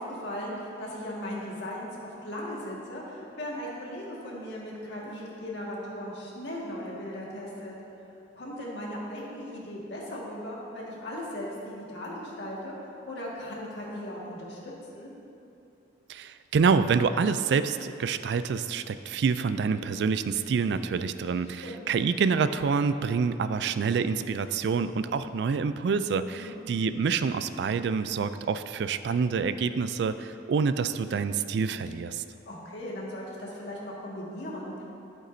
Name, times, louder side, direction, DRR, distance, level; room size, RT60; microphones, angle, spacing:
voice 1, 0.0-7.8 8.4-12.7 13.1-15.1 21.6-21.9 26.4-26.7 32.5-34.8, left 1 dB, 70° left, -4 dB, 1.7 m, -38 dB
voice 2, 16.1-32.2, right 5 dB, 65° right, 12 dB, 0.3 m, -27 dB
11.0 x 8.3 x 2.6 m, 2.7 s
head